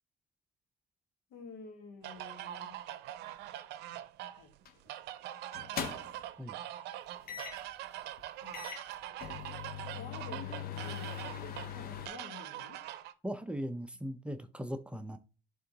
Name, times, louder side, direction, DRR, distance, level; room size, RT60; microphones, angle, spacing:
voice 1, 1.3-2.8 4.3-4.5 5.7-6.0 8.4-8.7 10.0-12.8, left 4 dB, 80° left, 1.7 m, -50 dB
sound 1, 2.0-13.1, right 13 dB, 80° right, 0.6 m, -43 dB
sound 2, 4.7-4.9 5.5-6.3 7.3-7.7 8.2-8.3 8.5-12.1, left 8 dB, 60° left, 1.0 m, -41 dB
voice 2, 13.2-15.2, equal, 5° right, 0.6 m, -39 dB
11.0 x 3.7 x 2.9 m
cardioid pair, 110°, 17 cm